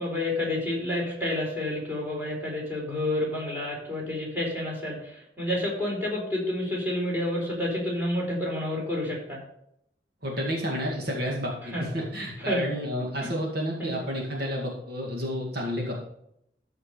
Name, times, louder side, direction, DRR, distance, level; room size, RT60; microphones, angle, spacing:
voice 1, 0.0-9.4 11.7-11.9 12.4-12.6 13.2-13.3 13.8-13.9, left 1 dB, 10° right, -4 dB, 3.9 m, -29 dB
voice 2, 10.2-16.0, equal, 60° right, -1 dB, 2.1 m, -30 dB
13.5 x 5.1 x 5.0 m, 0.74 s
head